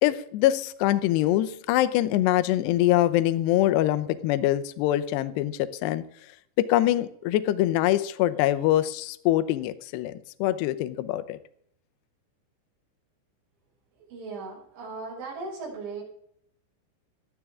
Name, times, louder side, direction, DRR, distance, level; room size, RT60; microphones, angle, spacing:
voice 1, 0.0-6.0 6.6-10.1 10.4-11.4, left 14 dB, 75° left, 11 dB, 2.6 m, -24 dB
voice 2, 14.1-16.0, right 3 dB, 75° right, -5 dB, 8.7 m, -37 dB
18.5 x 12.5 x 3.7 m, 0.68 s
omnidirectional pair, 5.5 m